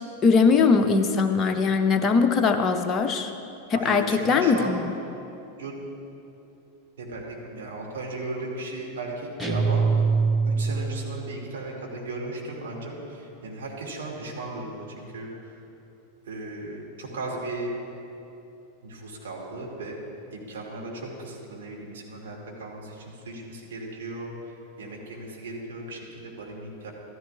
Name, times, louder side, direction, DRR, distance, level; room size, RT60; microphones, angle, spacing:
voice 1, 0.2-3.3 3.7-4.9, left 5 dB, 25° left, 5 dB, 0.6 m, -21 dB
voice 2, 3.7-4.7 5.6-5.7 7.0-10.0 10.5-15.3 16.3-17.7 18.8-20.0 20.3-24.3 24.8-26.9, right 2 dB, 60° right, -2 dB, 2.2 m, -36 dB
sound 1, 9.4-11.1, right 4 dB, ahead, 0.9 m, -23 dB
14.0 x 13.5 x 2.4 m, 2.8 s
figure-of-eight pair, 90°, 0 cm